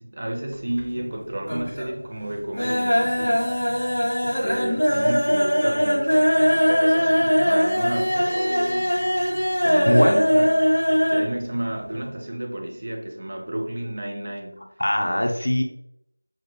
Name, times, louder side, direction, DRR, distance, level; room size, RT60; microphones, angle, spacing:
voice 1, 0.0-3.6 4.2-9.1 9.6-14.7, right 1 dB, 30° right, 2 dB, 0.6 m, -32 dB
sound 1, 0.5-1.1 1.4-2.0 2.3-11.3 11.6-11.7 12.0-12.1, equal, 30° left, 1.3 m, -21 dB
voice 2, 9.9-10.2 14.8-15.6, left 1 dB, 50° left, 2 dB, 0.7 m, -20 dB
6.4 x 2.4 x 3.0 m, 0.75 s
figure-of-eight pair, 175°, 0 cm